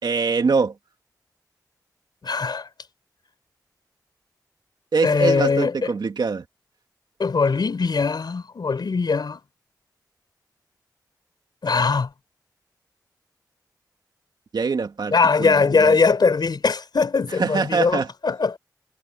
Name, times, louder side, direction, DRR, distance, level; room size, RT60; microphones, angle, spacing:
voice 1, 0.0-0.7 4.9-6.4 14.5-16.0 17.4-18.1, right 4 dB, 85° right, 2.7 m, -23 dB
voice 2, 2.2-2.7 5.0-5.9 7.2-9.4 11.6-12.1 15.1-18.6, left 4 dB, 80° left, 4.1 m, -21 dB
cardioid pair, 50°, 7 cm